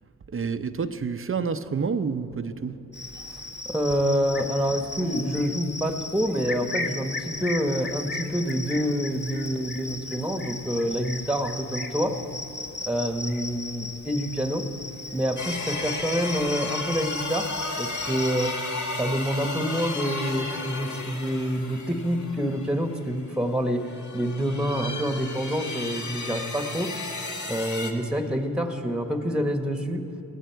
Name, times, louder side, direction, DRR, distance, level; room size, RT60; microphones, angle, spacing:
voice 1, 0.3-2.8, right 5 dB, 40° right, 11 dB, 0.7 m, -28 dB
Cricket, 2.9-18.6, left 2 dB, 30° left, 1.5 m, -36 dB
voice 2, 3.6-12.2 12.8-14.7 15.1-18.6 19.0-26.9 27.5-30.0, equal, 5° right, 6 dB, 1.3 m, -27 dB
sound 1, 15.4-23.3 23.8-27.9, left 3 dB, 55° left, 1.8 m, -34 dB
17.5 x 16.0 x 4.7 m, 2.9 s
supercardioid pair, 50°, 34 cm